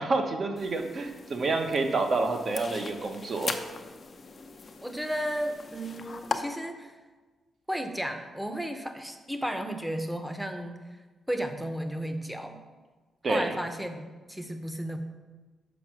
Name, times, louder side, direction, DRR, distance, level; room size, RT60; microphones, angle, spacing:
voice 1, 0.0-3.5 13.2-13.5, right 3 dB, 50° right, 4 dB, 0.9 m, -28 dB
sound 1, 0.6-6.4, left 4 dB, 45° left, 0.6 m, -39 dB
voice 2, 4.8-7.0 7.7-10.8 11.3-12.6 13.3-15.0, equal, 5° right, 6 dB, 0.8 m, -33 dB
6.2 x 4.8 x 6.1 m, 1.3 s
cardioid pair, 90°, 0 cm